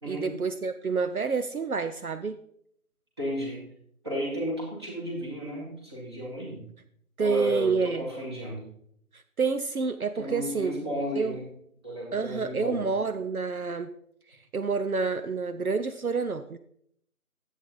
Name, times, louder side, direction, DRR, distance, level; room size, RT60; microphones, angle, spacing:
voice 1, 0.0-2.4 7.2-8.1 9.1-10.7 11.2-11.4 12.1-13.9 14.3-16.6, right 4 dB, 70° right, 9 dB, 0.7 m, -28 dB
voice 2, 3.2-3.6 4.0-6.6 7.2-8.6 10.2-11.5 11.8-12.8, equal, 15° right, -4 dB, 1.9 m, -33 dB
11.0 x 8.4 x 3.8 m, 0.69 s
figure-of-eight pair, 160°, 45 cm